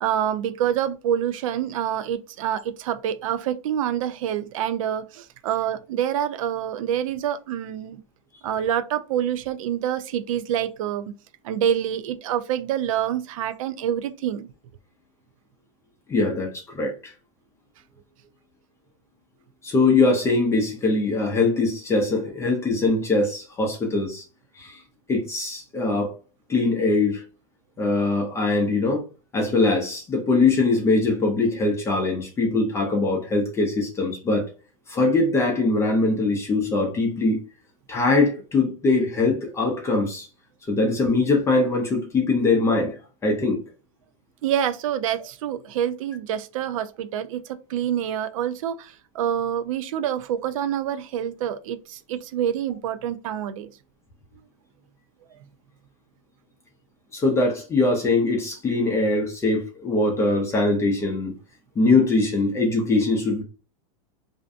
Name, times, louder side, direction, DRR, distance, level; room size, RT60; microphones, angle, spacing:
voice 1, 0.0-8.0 8.4-11.1 11.4-14.5 44.4-53.7, right 10 dB, 75° right, 0.4 m, -27 dB
voice 2, 16.1-17.1 19.6-24.2 24.6-24.8 25.1-26.1 26.5-27.2 27.8-29.0 29.3-34.5 34.9-37.4 37.9-40.3 40.7-43.0 43.2-43.6 57.1-61.3 61.8-63.4, left 3 dB, 15° left, 0.5 m, -22 dB
2.5 x 2.1 x 2.5 m
supercardioid pair, 140°, 17 cm